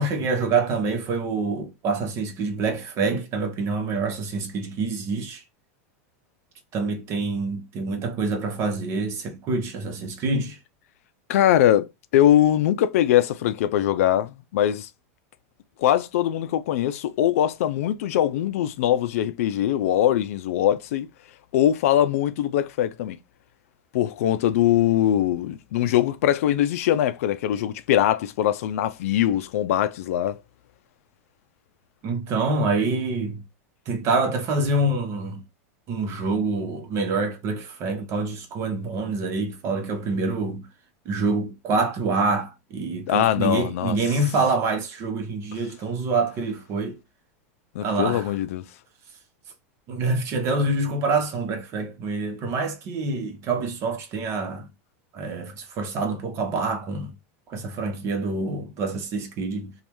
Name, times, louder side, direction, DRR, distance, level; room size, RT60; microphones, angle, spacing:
voice 1, 0.0-5.4 6.7-10.6 32.0-33.4 33.9-35.4 35.9-40.7 41.1-47.0 47.8-48.3 49.9-54.7 55.1-57.1 57.5-59.7, right 3 dB, 35° right, 0.9 m, -26 dB
voice 2, 11.3-14.9 15.8-21.1 21.5-23.2 23.9-30.4 43.1-44.0 47.7-48.6, left 11 dB, 75° left, 0.4 m, -22 dB
3.1 x 2.4 x 3.0 m
supercardioid pair, 150°, 8 cm